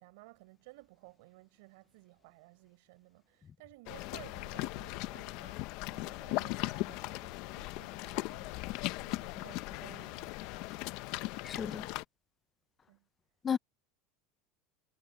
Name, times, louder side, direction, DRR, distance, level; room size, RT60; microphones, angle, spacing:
voice 1, 0.0-8.6 8.9-10.7 12.9-13.1, right 24 dB, 70° right, 4.6 m, -57 dB
sound 1, 3.9-12.0, left 20 dB, 55° left, 0.7 m, -38 dB
voice 2, 11.4-11.9 13.4-13.6, left 7 dB, 20° left, 0.6 m, -33 dB
supercardioid pair, 155°, 0 cm